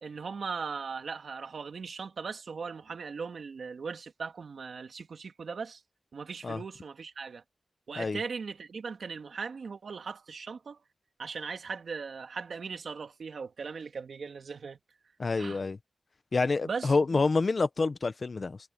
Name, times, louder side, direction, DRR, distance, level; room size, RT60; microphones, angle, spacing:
voice 1, 0.0-5.8 6.1-7.4 7.9-10.8 11.2-14.8 15.4-15.6 16.6-17.0, right 5 dB, 80° right, 2.6 m, -39 dB
voice 2, 15.2-15.8 16.3-18.6, left 3 dB, 55° left, 1.3 m, -27 dB
cardioid pair, 60°, 0 cm